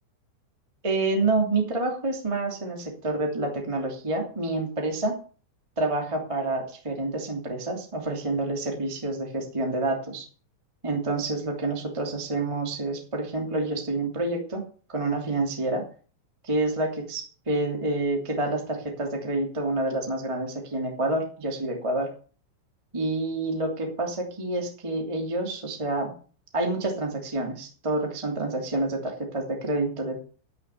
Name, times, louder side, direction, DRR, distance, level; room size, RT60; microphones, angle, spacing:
voice 1, 0.8-5.2 5.7-10.3 10.8-14.6 14.9-15.8 16.4-22.1 22.9-26.1 26.5-30.2, right 2 dB, 15° right, 2 dB, 1.3 m, -28 dB
13.0 x 7.1 x 7.2 m, 0.41 s
omnidirectional pair, 5.8 m